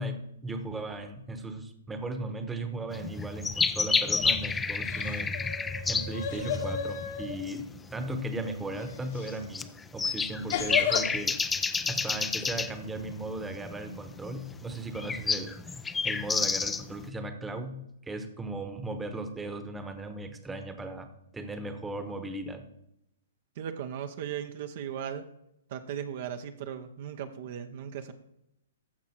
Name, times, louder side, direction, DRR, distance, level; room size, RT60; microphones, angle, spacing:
voice 1, 0.0-5.4 5.9-11.4 11.9-15.8 16.0-21.1 21.3-22.7, right 1 dB, 10° right, 8 dB, 1.2 m, -37 dB
sound 1, 2.9-17.0, left 4 dB, 10° left, 0.5 m, -30 dB
sound 2, 4.0-4.4 4.8-7.4 9.1-9.4 10.5-11.1, left 7 dB, 55° left, 1.5 m, -33 dB
voice 2, 23.6-25.2 25.7-28.1, right 8 dB, 50° right, 7 dB, 0.9 m, -37 dB
15.0 x 5.9 x 4.5 m, 0.80 s
figure-of-eight pair, 120°, 0 cm